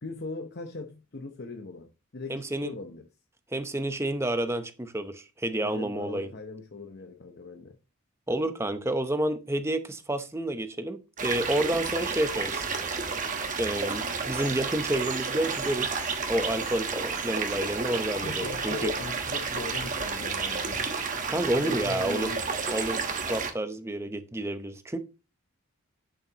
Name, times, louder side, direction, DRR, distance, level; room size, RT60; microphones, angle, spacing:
voice 1, 0.0-3.1 5.6-7.8 18.2-20.9 21.5-22.4, left 3 dB, 50° left, 0.8 m, -39 dB
voice 2, 2.3-2.7 3.5-6.3 8.3-12.7 13.6-16.0 16.3-18.9 21.3-22.3 22.7-25.0, right 1 dB, 10° right, 0.8 m, -30 dB
sound 1, 11.2-23.5, right 5 dB, 35° right, 1.2 m, -31 dB
8.7 x 7.2 x 2.9 m
head